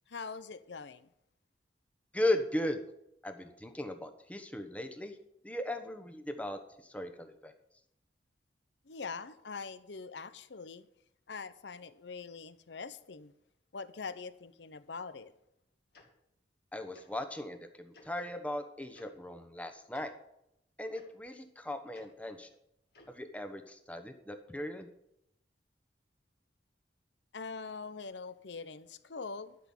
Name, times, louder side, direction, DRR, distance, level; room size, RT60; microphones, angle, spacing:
voice 1, 0.1-1.1 8.8-10.9 11.3-13.3 13.7-15.3 27.3-29.6, left 4 dB, 80° left, 0.8 m, -43 dB
voice 2, 2.1-2.8 3.2-5.2 5.4-7.5 16.7-20.1 20.8-22.5 23.1-24.9, left 1 dB, 10° left, 1.1 m, -37 dB
Tick-tock, 15.9-16.1 16.9-17.1 17.9-18.1 18.9-19.1 19.9-20.1 20.9-21.0 21.9-22.1 22.9-23.1, left 3 dB, 60° left, 2.6 m, -57 dB
12.0 x 6.0 x 8.7 m
head